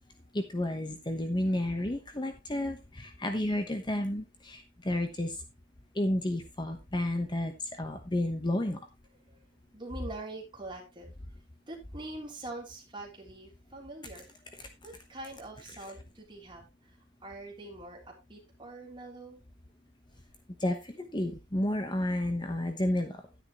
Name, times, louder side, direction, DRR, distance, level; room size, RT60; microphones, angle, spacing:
voice 1, 0.3-5.4 5.9-8.9 14.5-14.7 20.6-23.2, left 1 dB, 25° left, 6 dB, 1.0 m, -31 dB
voice 2, 9.7-11.1 11.7-14.3 14.8-16.6 17.2-19.4, right 2 dB, 25° right, 0 dB, 3.3 m, -44 dB
11.0 x 9.7 x 3.0 m, 0.25 s
head